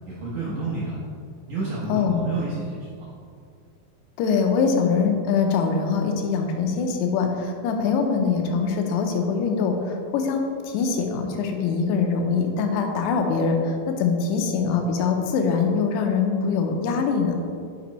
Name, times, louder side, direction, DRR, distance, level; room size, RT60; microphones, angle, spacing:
voice 1, 0.1-1.0 1.5-3.1, right 2 dB, 75° right, -7 dB, 1.8 m, -30 dB
voice 2, 1.9-2.3 4.2-17.4, left 5 dB, 85° left, 3 dB, 2.8 m, -23 dB
9.6 x 4.3 x 3.1 m, 2.3 s
omnidirectional pair, 4.7 m